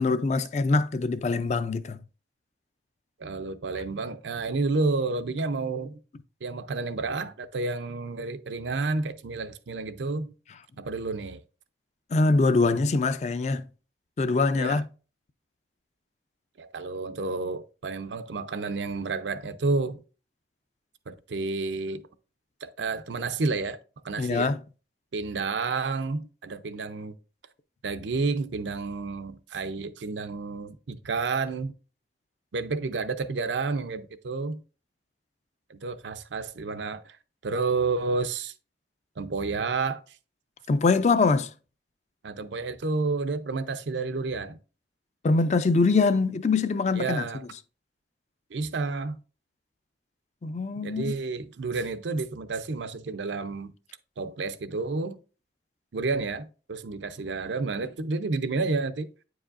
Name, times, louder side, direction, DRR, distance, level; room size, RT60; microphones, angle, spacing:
voice 1, 0.0-2.0 12.1-13.6 14.2-14.9 24.2-24.6 40.7-41.5 45.2-47.2 50.4-51.1, left 3 dB, 40° left, 0.3 m, -23 dB
voice 2, 3.2-6.0 6.4-10.3 10.8-11.4 14.6-14.8 16.6-20.0 21.1-22.1 22.6-23.8 24.0-24.5 25.1-27.1 27.8-31.7 32.5-34.6 35.7-37.2 37.4-38.5 39.2-40.0 42.2-44.6 46.9-47.4 48.5-49.2 50.8-53.7 54.2-55.2 55.9-59.1, right 3 dB, 90° right, 0.5 m, -30 dB
8.7 x 4.9 x 2.5 m
head